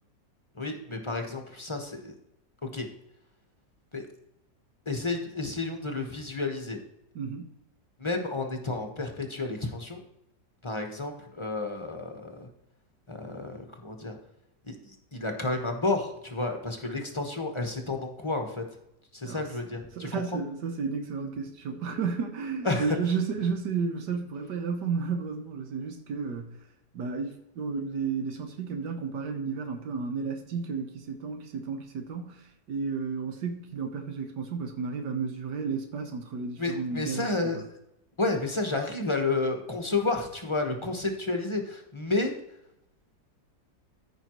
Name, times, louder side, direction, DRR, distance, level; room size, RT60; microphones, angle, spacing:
voice 1, 0.5-2.1 2.6-2.9 3.9-4.0 4.8-6.8 8.0-10.0 10.6-12.5 13.1-14.2 14.6-18.6 19.1-20.4 22.6-23.1 36.6-37.6 38.2-42.3, left 3 dB, 20° left, 3 dB, 0.9 m, -31 dB
voice 2, 7.1-7.5 19.2-19.4 19.9-26.6 26.9-37.6, right 5 dB, 90° right, 4 dB, 1.6 m, -32 dB
14.0 x 5.5 x 3.0 m, 0.83 s
omnidirectional pair, 1.8 m